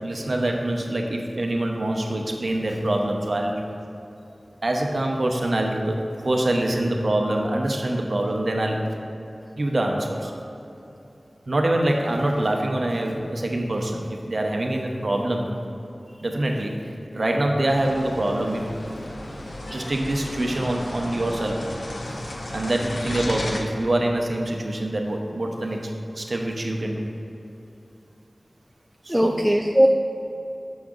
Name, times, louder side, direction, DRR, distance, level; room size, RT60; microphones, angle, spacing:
voice 1, 0.0-3.6 4.6-8.9 9.6-10.4 11.5-15.6 16.2-16.7 17.1-18.7 19.7-21.6 22.5-25.9 26.1-27.0 29.0-29.4, right 1 dB, 60° right, 1 dB, 0.8 m, -25 dB
sound 1, 17.7-23.6, left 1 dB, 80° left, 0.7 m, -34 dB
voice 2, 29.1-29.9, equal, 10° right, 3 dB, 0.3 m, -19 dB
6.3 x 5.9 x 3.8 m, 2.9 s
wide cardioid pair, 60°, 0 cm